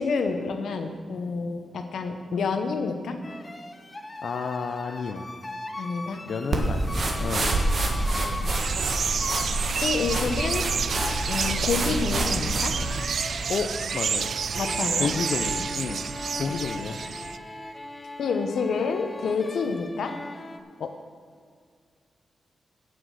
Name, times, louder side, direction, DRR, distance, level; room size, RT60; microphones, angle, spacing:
voice 1, 0.0-3.2 5.8-6.2 8.0-8.3 9.8-10.7 11.3-12.8 14.6-15.1 18.2-20.1, left 4 dB, 85° left, 6 dB, 1.0 m, -28 dB
sound 1, 3.2-20.6, left 2 dB, 20° left, 0.7 m, -39 dB
voice 2, 4.2-5.3 6.2-7.6 13.5-14.3 15.0-16.0 16.4-17.0 20.8-20.9, left 5 dB, 70° left, 4 dB, 0.5 m, -31 dB
sound 2, 6.5-13.0, right 2 dB, 45° right, 1.5 m, -27 dB
sound 3, 8.5-17.4, right 6 dB, 65° right, 0.3 m, -30 dB
17.0 x 6.3 x 4.8 m, 2.2 s
wide cardioid pair, 145°, 0 cm